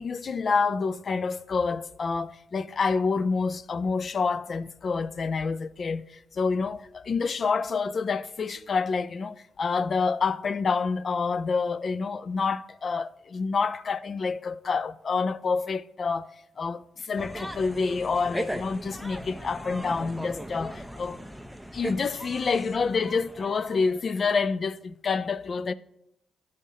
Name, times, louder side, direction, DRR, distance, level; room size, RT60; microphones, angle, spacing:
voice 1, 0.0-16.3 16.6-21.2 21.7-25.7, left 4 dB, 50° left, 0.4 m, -28 dB
sound 1, 17.2-24.0, right 1 dB, ahead, 0.5 m, -38 dB
13.5 x 5.0 x 2.8 m
supercardioid pair, 65°, 0 cm